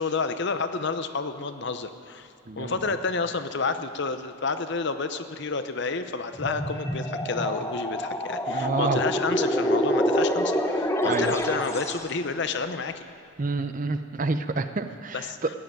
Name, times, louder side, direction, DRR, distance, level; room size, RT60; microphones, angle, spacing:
voice 1, 0.0-2.3 2.6-13.0 15.1-15.4, left 4 dB, 55° left, 10 dB, 0.7 m, -30 dB
voice 2, 2.5-3.0 8.5-9.0 11.0-11.3 13.4-15.5, right 3 dB, 35° right, 10 dB, 0.6 m, -28 dB
sound 1, 6.3-12.1, equal, 10° left, 0.8 m, -26 dB
15.5 x 7.7 x 9.4 m, 2.6 s
head